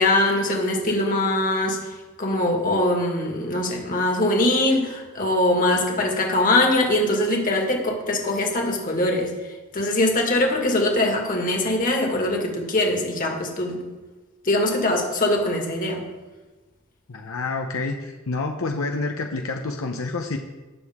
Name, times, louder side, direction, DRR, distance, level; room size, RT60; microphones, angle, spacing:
voice 1, 0.0-1.8 2.2-9.3 9.7-13.8 14.4-16.1, left 1 dB, 40° left, 1 dB, 1.9 m, -22 dB
voice 2, 17.1-20.4, left 3 dB, 80° left, 3 dB, 0.8 m, -28 dB
19.0 x 6.4 x 3.6 m, 1.2 s
head